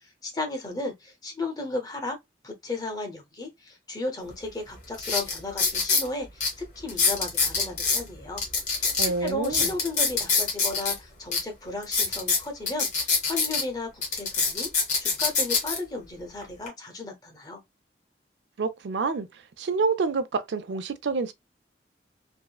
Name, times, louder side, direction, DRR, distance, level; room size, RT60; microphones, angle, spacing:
voice 1, 0.0-2.2 2.4-8.4 8.7-14.7 15.0-17.6, left 2 dB, 20° left, 0.7 m, -34 dB
sound 1, 4.3-4.4 4.9-6.1 6.4-6.5 6.9-8.0 8.4-10.9 11.3-11.4 11.8-13.6 14.0-15.8 16.4-16.7, left 4 dB, 45° left, 1.2 m, -24 dB
voice 2, 9.0-9.7 18.6-19.3 19.6-21.3, right 4 dB, 85° right, 0.4 m, -27 dB
3.5 x 2.0 x 2.3 m
head